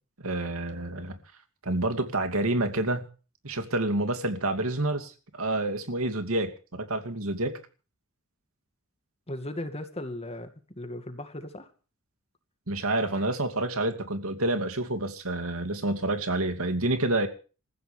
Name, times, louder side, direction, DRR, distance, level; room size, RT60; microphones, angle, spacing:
voice 1, 0.2-1.2 1.6-3.1 3.4-7.6 12.7-17.3, right 2 dB, 90° right, 2.7 m, -28 dB
voice 2, 9.3-11.7, left 1 dB, 30° left, 2.2 m, -37 dB
27.5 x 14.5 x 3.4 m
head